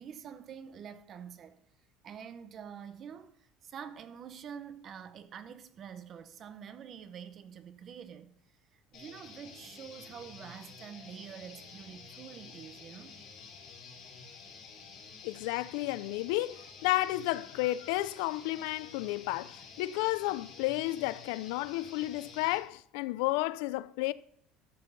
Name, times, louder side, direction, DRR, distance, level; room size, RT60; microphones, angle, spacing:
voice 1, 0.0-1.6 2.0-8.3 8.7-13.2, right 8 dB, 30° right, 0.7 m, -47 dB
sound 1, 8.9-22.6, left 5 dB, 45° left, 4.4 m, -50 dB
voice 2, 15.2-24.1, left 18 dB, 85° left, 0.4 m, -32 dB
13.0 x 7.1 x 4.0 m
cardioid pair, 170°, 0 cm